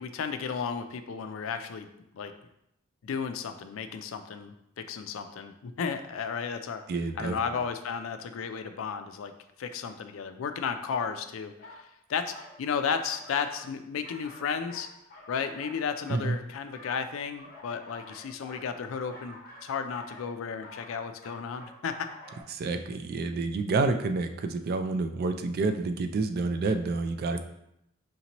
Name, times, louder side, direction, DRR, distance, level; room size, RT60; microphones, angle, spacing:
voice 1, 0.0-1.9 2.1-2.3 3.0-6.8 7.2-9.3 9.6-11.8 12.1-14.9 15.3-22.1, left 6 dB, 75° left, 9 dB, 0.4 m, -33 dB
voice 2, 6.9-7.4 16.1-16.4 22.5-27.4, right 3 dB, 50° right, 8 dB, 0.3 m, -28 dB
sound 1, 11.6-11.8 12.3-12.6 13.0-13.7 14.0-16.3 16.7-22.4, left 1 dB, 50° left, 1.0 m, -48 dB
5.1 x 2.7 x 2.9 m, 0.81 s
head